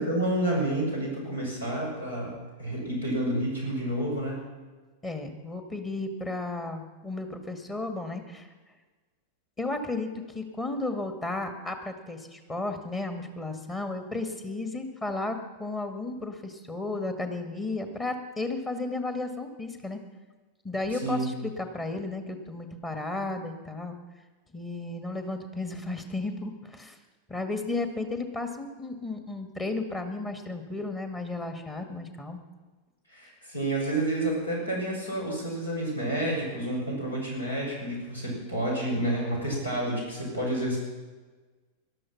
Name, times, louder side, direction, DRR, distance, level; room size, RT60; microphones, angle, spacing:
voice 1, 0.0-4.4 20.9-21.3 33.1-40.8, right 1 dB, 80° left, -2 dB, 6.1 m, -29 dB
voice 2, 5.0-8.5 9.6-20.0 20.6-24.0 24.5-27.0 27.3-32.4, left 2 dB, 20° left, 6 dB, 1.9 m, -34 dB
18.5 x 12.5 x 5.9 m, 1.3 s
figure-of-eight pair, 90°, 0 cm